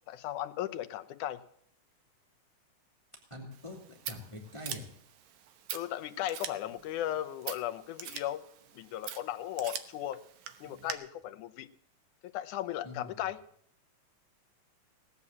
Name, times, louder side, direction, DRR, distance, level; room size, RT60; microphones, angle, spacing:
voice 1, 0.1-1.4 5.7-8.4 8.7-10.2 10.6-11.7 12.3-13.4, left 12 dB, 85° left, 10 dB, 2.3 m, -36 dB
voice 2, 3.3-3.8 4.1-4.9 12.8-13.2, left 2 dB, 10° left, 0 dB, 2.8 m, -44 dB
Scissors, 3.5-10.9, right 10 dB, 80° right, 2.5 m, -44 dB
18.0 x 9.8 x 7.3 m, 0.67 s
omnidirectional pair, 3.4 m